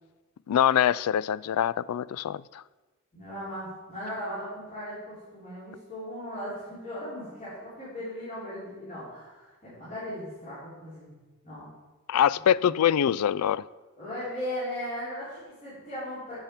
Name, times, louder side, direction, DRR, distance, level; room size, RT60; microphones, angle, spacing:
voice 1, 0.5-2.6 12.1-13.6, left 9 dB, 90° left, 21 dB, 0.3 m, -24 dB
voice 2, 3.1-11.1 11.4-11.7 12.6-12.7 14.0-16.4, equal, 35° left, -11 dB, 3.8 m, -37 dB
8.7 x 7.3 x 5.9 m, 1.2 s
head